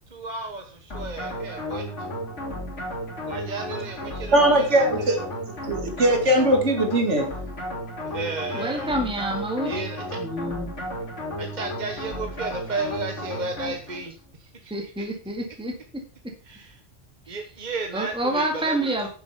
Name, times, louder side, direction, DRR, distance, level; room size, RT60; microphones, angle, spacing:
voice 1, 0.1-2.1 3.3-5.2 8.0-8.9 9.6-10.2 11.4-15.1 16.4-16.8 17.3-19.1, right 3 dB, 40° right, 1.3 m, -34 dB
sound 1, 0.9-14.1, equal, 80° left, 3.6 m, -33 dB
voice 2, 4.3-5.2 5.7-7.3, right 1 dB, 75° right, 2.4 m, -20 dB
voice 3, 8.5-9.7 10.2-10.7 14.7-16.0 17.3-17.4 17.9-19.1, right 1 dB, 5° right, 1.9 m, -28 dB
9.6 x 7.2 x 5.7 m
omnidirectional pair, 1.2 m